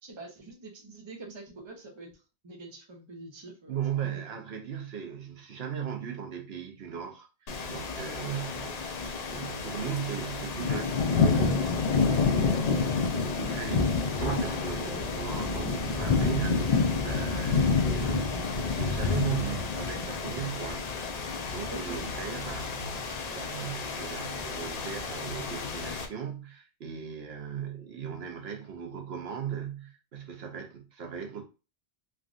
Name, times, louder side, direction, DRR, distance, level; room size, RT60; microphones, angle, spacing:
voice 1, 0.0-2.2 2.4-4.4 21.7-22.0, right 2 dB, 30° right, 0.7 m, -45 dB
voice 2, 3.7-20.9 21.2-31.5, right 8 dB, 75° right, 1.0 m, -38 dB
sound 1, 7.5-26.1, left 4 dB, 50° left, 0.5 m, -29 dB
Thunder, 14.1-21.1, right 1 dB, 75° left, 1.3 m, -40 dB
3.5 x 2.4 x 2.4 m
omnidirectional pair, 1.1 m